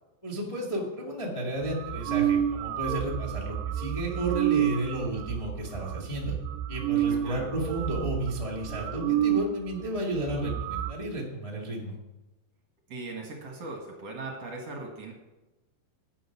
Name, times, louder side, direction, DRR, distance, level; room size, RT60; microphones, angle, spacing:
voice 1, 0.2-6.3 6.7-11.9, right 1 dB, 35° left, -3 dB, 0.5 m, -32 dB
sound 1, 1.6-9.5 9.8-9.9 10.2-10.9, right 11 dB, 85° right, 2.7 m, -29 dB
voice 2, 7.1-7.5 12.9-15.1, right 2 dB, 50° right, 0 dB, 2.2 m, -38 dB
11.5 x 9.0 x 5.9 m, 1.1 s
omnidirectional pair, 4.9 m